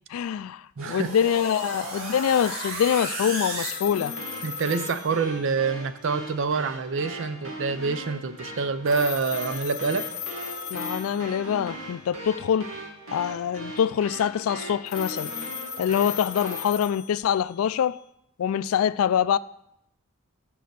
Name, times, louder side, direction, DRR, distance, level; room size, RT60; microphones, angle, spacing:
voice 1, 0.1-4.1 10.7-12.7 13.1-15.3 15.8-18.0 18.4-19.4, left 8 dB, 85° left, 0.3 m, -25 dB
voice 2, 0.8-1.1 4.4-10.1, right 4 dB, 65° right, 0.5 m, -26 dB
sound 1, 0.8-16.7, right 2 dB, 80° right, 1.9 m, -37 dB
sound 2, 3.6-5.9 8.9-11.7 14.9-17.8, left 8 dB, 55° left, 0.9 m, -37 dB
6.5 x 5.5 x 6.8 m
head